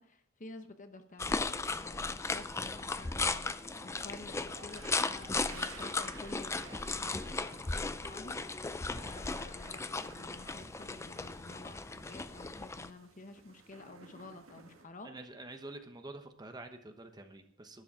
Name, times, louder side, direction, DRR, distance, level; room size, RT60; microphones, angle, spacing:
voice 1, 0.0-15.2, left 2 dB, 40° left, 8 dB, 1.0 m, -51 dB
sound 1, 1.1-12.3, right 2 dB, 45° right, 1.7 m, -62 dB
sound 2, 1.2-12.9, left 3 dB, 15° left, 0.4 m, -36 dB
sound 3, 3.2-14.8, right 4 dB, 85° right, 1.6 m, -56 dB
voice 2, 15.0-17.8, right 2 dB, 20° right, 6 dB, 1.0 m, -47 dB
12.0 x 10.0 x 4.9 m, 0.67 s
head